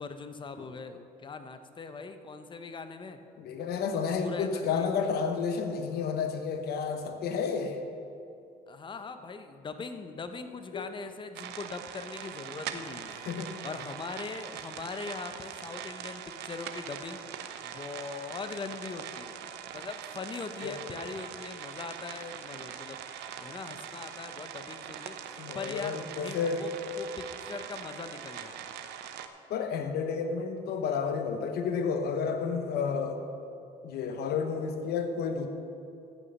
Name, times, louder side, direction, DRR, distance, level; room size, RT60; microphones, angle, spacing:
voice 1, 0.0-3.2 4.2-4.9 8.7-13.2 13.6-19.5 19.7-23.0 23.4-26.7 27.0-28.5, left 4 dB, 30° left, 9 dB, 0.8 m, -41 dB
voice 2, 3.4-7.8 10.7-10.9 13.2-13.5 20.6-20.8 25.4-26.6 29.5-33.2 33.8-35.5, left 5 dB, 70° left, 6 dB, 1.0 m, -31 dB
sound 1, 11.3-29.3, right 9 dB, 80° right, 0.8 m, -42 dB
14.5 x 6.9 x 5.4 m, 2.7 s
cardioid pair, 110°, 17 cm